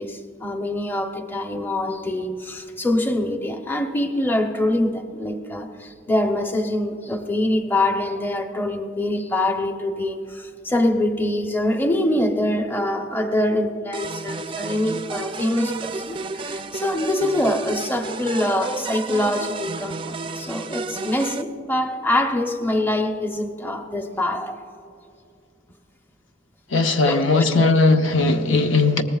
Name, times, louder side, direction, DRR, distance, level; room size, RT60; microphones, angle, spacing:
voice 1, 0.0-24.6 27.0-27.7 28.5-28.9, left 1 dB, 10° left, 0.8 m, -24 dB
sound 1, 13.9-21.4, right 4 dB, 30° right, 0.4 m, -32 dB
voice 2, 26.7-29.0, left 3 dB, 85° left, 0.9 m, -18 dB
22.0 x 18.5 x 2.4 m
head